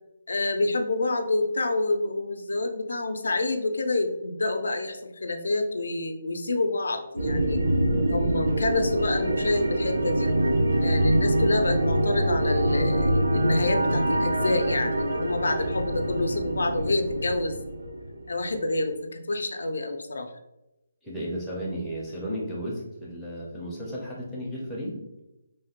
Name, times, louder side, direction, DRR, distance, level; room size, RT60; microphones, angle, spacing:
voice 1, 0.3-7.6 8.1-10.3 10.8-17.6 18.3-20.3, left 2 dB, 80° left, 6 dB, 0.4 m, -27 dB
sound 1, 7.2-18.5, right 1 dB, 85° right, 0.5 m, -25 dB
voice 2, 21.0-25.0, equal, ahead, -9 dB, 0.4 m, -34 dB
3.1 x 2.1 x 2.8 m, 0.93 s
hypercardioid pair, 180°, 0 cm